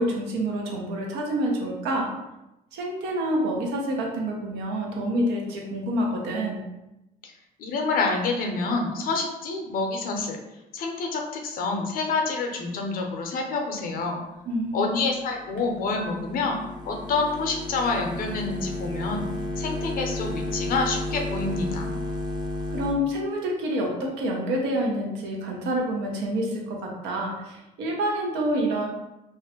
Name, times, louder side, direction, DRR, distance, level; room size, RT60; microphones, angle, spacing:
voice 1, 0.0-2.1 2.7-6.6 14.5-15.0 22.7-28.9, equal, 85° right, 0 dB, 0.7 m, -27 dB
voice 2, 7.6-10.4 10.7-14.2 14.7-16.6 16.9-19.3 19.6-21.9, left 3 dB, 60° left, 2 dB, 0.5 m, -27 dB
sound 1, 15.3-22.9, left 2 dB, 25° right, 0.4 m, -32 dB
2.5 x 2.1 x 2.8 m, 0.94 s
cardioid pair, 110°, 17 cm